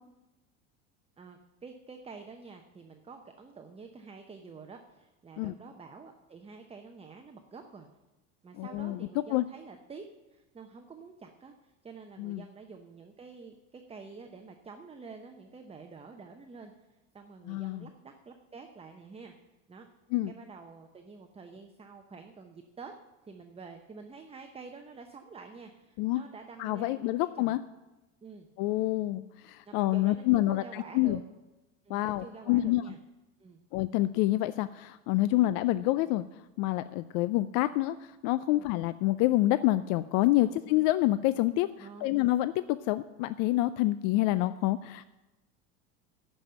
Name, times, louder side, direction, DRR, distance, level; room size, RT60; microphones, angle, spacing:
voice 1, 1.2-7.9 8.4-10.0 10.3-19.3 19.7-19.9 20.3-22.9 23.3-27.6 28.2-28.5 29.6-31.2 31.8-33.0 33.4-33.6 38.4-38.7 40.4-40.7 41.8-42.1, right 4 dB, 15° right, 5 dB, 0.8 m, -48 dB
voice 2, 8.6-9.0 9.3-9.5 12.2-12.4 17.5-17.9 20.1-20.3 26.0-26.2 26.6-27.6 28.6-31.2 31.9-32.8 33.7-36.2 36.6-45.1, left 16 dB, 55° left, 14 dB, 0.5 m, -27 dB
11.5 x 5.5 x 8.7 m, 1.0 s
hypercardioid pair, 90°, 38 cm